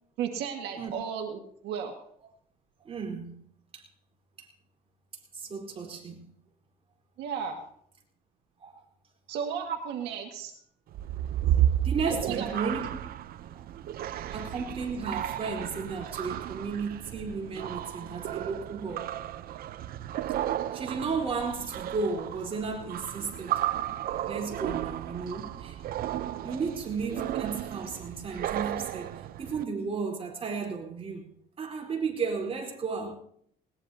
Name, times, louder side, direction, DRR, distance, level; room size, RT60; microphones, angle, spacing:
voice 1, 0.2-1.9 7.2-7.6 9.3-10.5 12.1-12.5 14.2-14.3 26.3-26.6, right 7 dB, 80° right, 1.9 m, -34 dB
voice 2, 2.8-3.4 3.7-3.8 4.4-4.5 5.3-6.3 8.6-8.8 11.8-12.9 13.5-13.6 14.3-19.1 20.7-23.6 24.3-25.8 26.4-31.3 31.6-33.2, right 5 dB, 35° right, 4.4 m, -34 dB
sound 1, 10.9-29.6, right 11 dB, 60° right, 0.7 m, -33 dB
20.5 x 19.0 x 2.9 m
cardioid pair, 110°, 17 cm